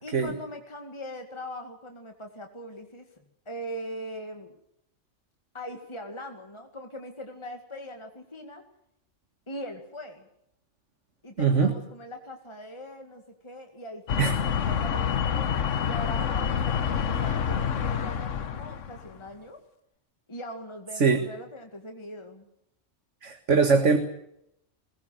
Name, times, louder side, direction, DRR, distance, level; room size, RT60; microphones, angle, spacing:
voice 1, 0.0-3.1 3.5-4.6 5.5-8.6 9.5-10.3 11.2-19.6 20.3-22.5, equal, 25° left, 4 dB, 2.2 m, -41 dB
voice 2, 11.4-11.7 14.2-14.3 21.0-21.2 23.2-24.0, right 5 dB, 70° right, 6 dB, 2.2 m, -21 dB
sound 1, 14.1-19.1, left 7 dB, 80° left, 1.4 m, -27 dB
22.0 x 20.0 x 8.0 m, 0.76 s
omnidirectional pair, 1.3 m